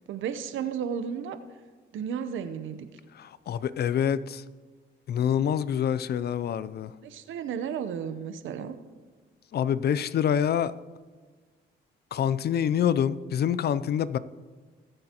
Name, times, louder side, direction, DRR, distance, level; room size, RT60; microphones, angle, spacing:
voice 1, 0.1-1.4 1.9-2.9 7.0-8.7, right 7 dB, 75° right, 0.8 m, -33 dB
voice 2, 3.5-4.4 5.1-6.9 9.5-10.7 12.1-14.2, left 9 dB, 55° left, 0.5 m, -26 dB
20.5 x 7.9 x 2.9 m
cardioid pair, 90°, 20 cm